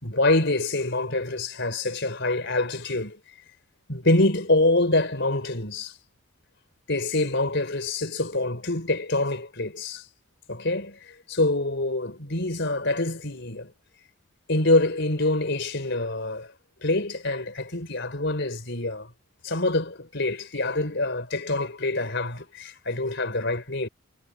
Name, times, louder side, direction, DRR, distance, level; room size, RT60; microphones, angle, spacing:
voice 1, 0.0-3.2 3.9-5.9 6.9-10.0 10.5-11.0 11.3-13.7 14.5-16.5 16.8-19.1 19.4-23.9, left 2 dB, 55° left, 4.7 m, -25 dB
head